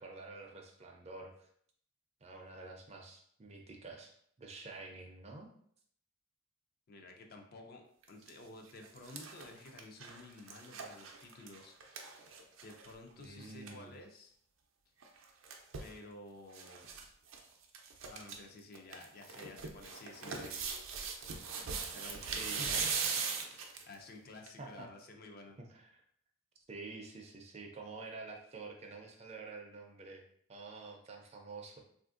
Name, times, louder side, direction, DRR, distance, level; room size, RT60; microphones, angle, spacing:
voice 1, 0.0-1.5 2.2-4.1 4.4-5.5 13.2-13.9 22.3-22.9 24.6-24.9 25.6-26.0 26.7-30.2 30.5-31.8, right 3 dB, 35° right, 2 dB, 0.4 m, -48 dB
voice 2, 6.9-12.2 12.6-14.3 15.8-16.9 18.1-20.9 21.9-23.1 23.4-25.6, left 2 dB, 50° left, 3 dB, 0.4 m, -52 dB
sound 1, 8.0-8.3 8.7-12.9 13.2-13.3 13.5-13.8 15.0-15.9 16.5-17.0 17.3-17.4 17.7-18.4 18.7-23.9 24.5-24.6, right 5 dB, 90° right, 0.5 m, -40 dB
3.3 x 2.5 x 2.4 m, 0.65 s
head